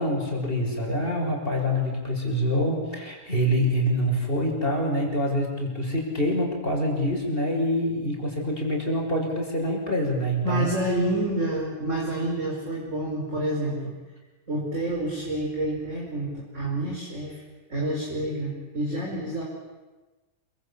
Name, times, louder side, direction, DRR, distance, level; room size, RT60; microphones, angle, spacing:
voice 1, 0.0-10.7, equal, 15° left, 0 dB, 6.2 m, -26 dB
voice 2, 10.4-13.9 14.5-17.4 17.7-19.4, right 1 dB, 20° right, -2 dB, 5.1 m, -28 dB
28.5 x 24.5 x 8.5 m, 1.2 s
omnidirectional pair, 3.6 m